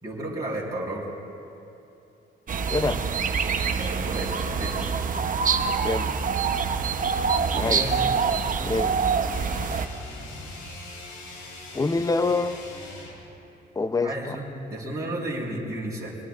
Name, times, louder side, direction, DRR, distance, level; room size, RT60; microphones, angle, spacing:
voice 1, 0.0-1.0 3.8-4.9 7.5-8.1 14.0-14.4 14.7-16.2, right 1 dB, 20° right, -6 dB, 4.2 m, -32 dB
sound 1, 2.5-9.9, right 6 dB, 40° right, 0.8 m, -25 dB
voice 2, 2.7-3.0 5.8-6.2 7.5-7.9 8.6-9.0 11.7-12.6 13.8-14.4, left 3 dB, 15° left, 11 dB, 0.6 m, -26 dB
sound 2, 9.3-13.3, left 2 dB, 85° left, 2.8 m, -41 dB
24.5 x 19.0 x 2.5 m, 2.8 s
cardioid pair, 90°, 20 cm